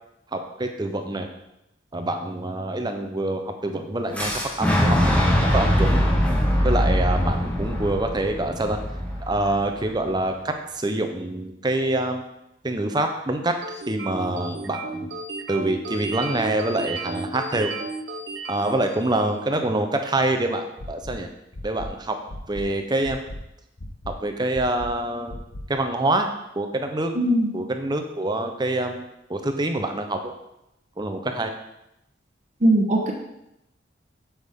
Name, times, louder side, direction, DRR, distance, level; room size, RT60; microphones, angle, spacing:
voice 1, 0.3-1.3 1.9-5.2 5.5-6.0 6.6-8.8 9.2-12.2 12.6-13.5 13.9-15.1 15.5-17.7 18.5-21.3 21.6-22.2 22.5-23.2 24.1-25.3 25.7-26.3 26.6-27.1 27.5-30.3 31.0-31.5, right 2 dB, 20° right, 5 dB, 0.7 m, -26 dB
Boom, 4.1-10.0, equal, 5° left, 1.2 m, -22 dB
sound 1, 13.6-19.4, right 3 dB, 65° right, 0.9 m, -34 dB
sound 2, 20.8-21.1 21.5-21.9 22.3-22.6 23.0-23.4 23.8-24.1 24.5-24.9 25.3-25.6, left 1 dB, 65° left, 1.2 m, -36 dB
voice 2, 27.1-27.5 32.6-33.1, right 1 dB, 40° right, 1 dB, 1.1 m, -19 dB
7.9 x 7.1 x 3.7 m, 0.85 s
head